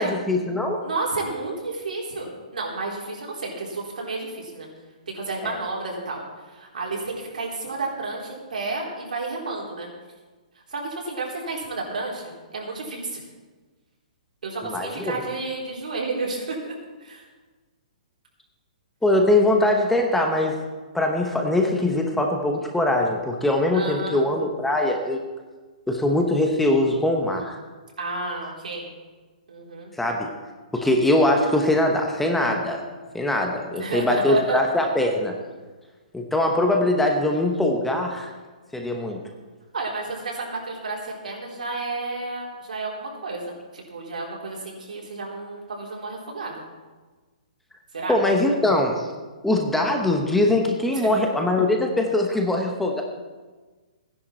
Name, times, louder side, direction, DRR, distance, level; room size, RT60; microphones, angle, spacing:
voice 1, 0.0-0.8 5.4-5.6 14.6-15.1 19.0-20.6 20.9-25.2 25.9-27.6 30.0-30.3 30.7-32.9 33.1-35.3 36.1-38.3 38.7-39.2 48.1-49.1 49.4-53.0, left 1 dB, 5° left, 2 dB, 1.0 m, -22 dB
voice 2, 0.8-4.7 5.1-9.9 10.7-13.2 14.4-16.7 17.0-17.2 23.7-24.2 28.0-28.9 29.5-29.9 33.8-34.6 39.7-46.6 47.9-48.2 50.9-51.2, right 3 dB, 90° right, -2 dB, 3.9 m, -31 dB
15.5 x 10.5 x 4.4 m, 1.3 s
hypercardioid pair, 160°, 4 cm